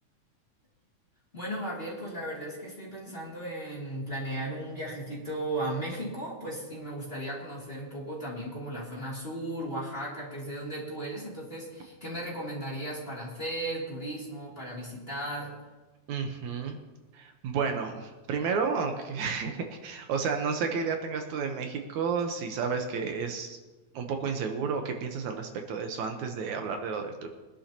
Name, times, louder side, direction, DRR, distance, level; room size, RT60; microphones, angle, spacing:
voice 1, 1.3-15.5, right 1 dB, 20° left, -4 dB, 2.8 m, -36 dB
voice 2, 16.1-16.8 17.1-23.6 23.9-27.3, right 5 dB, 75° right, 4 dB, 2.3 m, -31 dB
22.5 x 11.5 x 2.9 m, 1.2 s
omnidirectional pair, 3.5 m